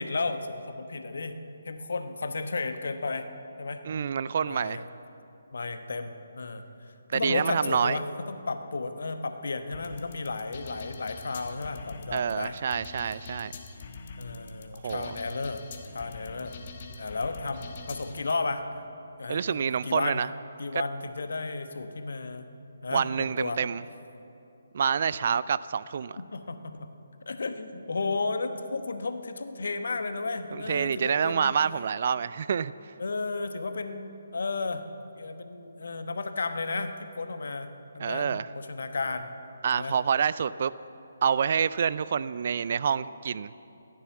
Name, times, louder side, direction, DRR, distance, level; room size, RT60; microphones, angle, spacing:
voice 1, 0.0-1.4 1.6-3.3 3.6-3.8 4.5-4.8 5.5-6.6 7.1-12.6 14.2-15.6 15.9-16.6 17.0-18.6 19.2-20.2 20.6-22.5 22.8-23.6 26.1-26.9 27.3-31.5 33.0-34.8 35.1-36.9 37.2-37.7 37.9-39.3 39.7-39.9, left 3 dB, 60° left, 8 dB, 1.1 m, -33 dB
voice 2, 3.8-4.8 7.1-8.0 12.1-13.5 14.8-15.2 19.3-20.3 20.7-20.8 22.9-23.8 24.7-26.2 30.5-32.7 38.0-38.5 39.6-40.7 41.2-43.5, right 7 dB, 45° right, 17 dB, 0.3 m, -27 dB
sound 1, 9.7-18.3, left 3 dB, 40° left, 1.2 m, -43 dB
14.0 x 10.5 x 7.2 m, 2.8 s
figure-of-eight pair, 145°, 0 cm